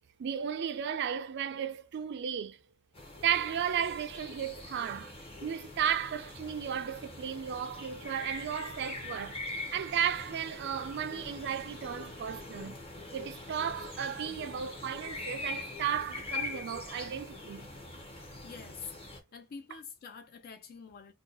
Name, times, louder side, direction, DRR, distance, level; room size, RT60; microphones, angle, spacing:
voice 1, 0.2-2.6 3.2-9.4 9.7-12.8 13.1-17.7, right 8 dB, 55° right, 0.4 m, -34 dB
sound 1, 2.9-19.2, left 2 dB, 25° left, 0.7 m, -43 dB
voice 2, 18.4-18.9 19.3-21.1, left 6 dB, 45° left, 0.4 m, -46 dB
2.7 x 2.2 x 3.7 m
head